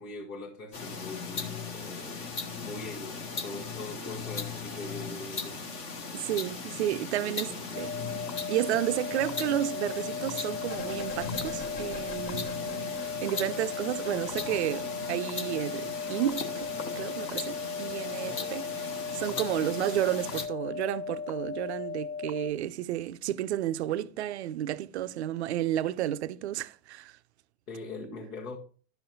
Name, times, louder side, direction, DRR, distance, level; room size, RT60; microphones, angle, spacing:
voice 1, 0.0-2.3 2.6-5.6 7.2-7.9 18.2-18.4 19.3-19.5 27.7-28.6, left 2 dB, 65° left, 1.3 m, -42 dB
sound 1, 0.7-20.5, left 4 dB, 15° left, 0.4 m, -38 dB
voice 2, 6.1-7.9 8.5-12.5 13.2-16.7 17.0-18.7 19.1-27.2, right 12 dB, 45° right, 0.4 m, -31 dB
sound 2, 7.7-22.5, left 5 dB, 90° left, 0.6 m, -37 dB
sound 3, 10.7-15.1 15.9-17.7 18.0-18.1, left 1 dB, 35° left, 1.5 m, -45 dB
11.0 x 6.9 x 2.6 m
figure-of-eight pair, 100°, 48 cm